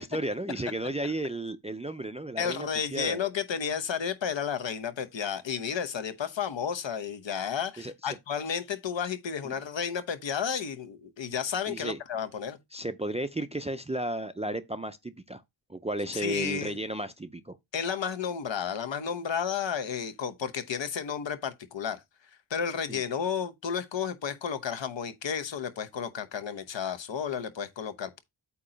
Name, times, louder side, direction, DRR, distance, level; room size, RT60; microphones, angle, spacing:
voice 1, 0.0-3.2 7.8-8.2 9.4-9.5 11.7-12.0 12.7-15.4 15.7-17.6 22.9-23.0, right 1 dB, 15° right, 0.4 m, -34 dB
voice 2, 2.4-12.6 16.1-16.8 17.7-22.0 22.5-28.2, left 7 dB, 70° left, 1.0 m, -32 dB
8.3 x 2.9 x 5.0 m
wide cardioid pair, 140°, 46 cm